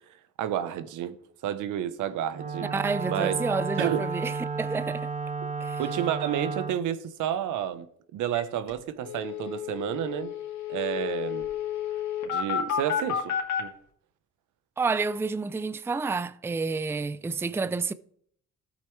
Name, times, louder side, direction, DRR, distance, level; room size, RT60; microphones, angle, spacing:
voice 1, 0.4-1.2 1.4-2.7 3.1-3.4 3.8-4.0 5.8-7.9 8.1-10.3 10.7-11.5 12.3-13.3 13.6-13.7, right 10 dB, 85° right, 0.9 m, -30 dB
Wind instrument woodwind instrument, 2.3-6.8, right 4 dB, 25° right, 0.8 m, -32 dB
voice 2, 2.6-5.1 5.6-5.8 14.8-17.9, right 4 dB, 10° right, 0.4 m, -29 dB
sound 1, 8.3-8.4 8.7-8.8 9.0-13.6, left 9 dB, 70° left, 2.4 m, -31 dB
13.5 x 8.3 x 3.2 m
cardioid pair, 90°, 30 cm